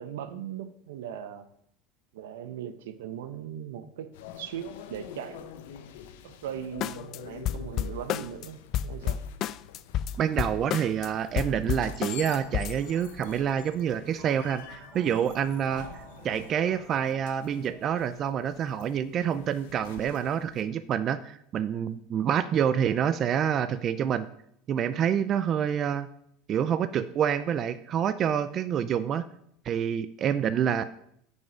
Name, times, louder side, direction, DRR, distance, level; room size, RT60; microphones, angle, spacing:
voice 1, 0.0-1.5 2.1-4.1 4.4-5.5 6.2-9.2, right 9 dB, 85° right, 11 dB, 0.7 m, -39 dB
sound 1, 4.1-20.6, left 9 dB, 80° left, 0.7 m, -47 dB
sound 2, 6.8-7.2 7.4-8.5 8.7-11.1 11.4-12.8, left 10 dB, 50° left, 0.3 m, -30 dB
voice 2, 10.2-24.3 24.7-26.1 26.5-29.2 29.7-30.8, right 8 dB, 40° right, 13 dB, 0.4 m, -27 dB
sound 3, 12.8-18.1, right 3 dB, 60° right, 2.0 m, -51 dB
9.4 x 5.4 x 5.0 m, 0.71 s
supercardioid pair, 110°, 0 cm